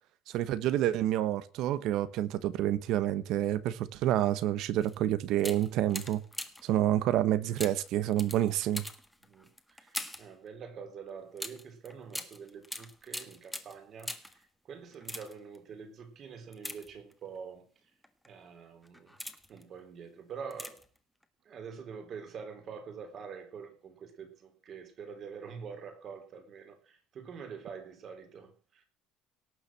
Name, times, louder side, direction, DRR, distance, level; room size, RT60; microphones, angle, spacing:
voice 1, 0.3-6.2 6.6-8.8, right 12 dB, 65° right, 1.3 m, -28 dB
sound 1, 4.8-5.0 5.4-6.8 7.6-10.3 11.4-14.4 14.9-15.6 16.5-17.4 18.0-18.3 18.8-19.6 20.5-21.0 21.2-21.3, left 1 dB, ahead, 1.7 m, -42 dB
voice 2, 9.2-17.7 18.3-19.1 19.5-20.8 21.5-28.8, right 6 dB, 40° right, 3.7 m, -46 dB
18.0 x 6.9 x 7.5 m
cardioid pair, 135°, 0 cm